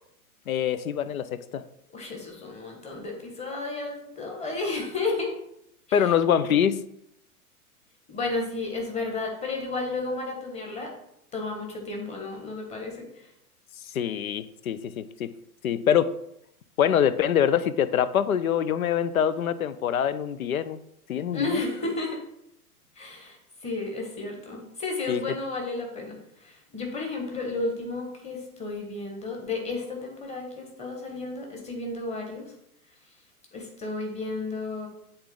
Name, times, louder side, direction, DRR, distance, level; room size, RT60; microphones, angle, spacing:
voice 1, 0.5-1.6 5.9-6.8 13.9-15.3 15.6-16.2 16.8-20.8 21.1-21.6 25.1-25.2, left 9 dB, 70° left, 14 dB, 0.6 m, -24 dB
voice 2, 1.9-5.3 5.9-6.1 8.1-10.9 11.3-13.3 21.3-22.2 22.9-23.4 23.6-32.5 33.5-34.9, left 3 dB, 15° left, 1 dB, 1.5 m, -32 dB
7.9 x 3.8 x 3.8 m, 0.77 s
figure-of-eight pair, 105°, 44 cm